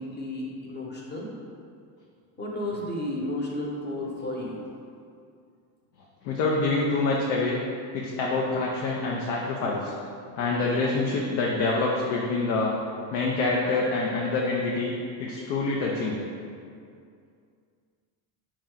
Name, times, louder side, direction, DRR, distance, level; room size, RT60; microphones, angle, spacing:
voice 1, 0.0-1.3 2.4-4.7, left 1 dB, 20° left, -2 dB, 0.9 m, -33 dB
voice 2, 6.2-7.6 7.9-9.9 10.4-12.8 13.1-14.9 15.2-16.2, left 3 dB, 80° left, -2 dB, 0.7 m, -26 dB
4.3 x 3.1 x 3.8 m, 2.4 s
supercardioid pair, 100°, 50 cm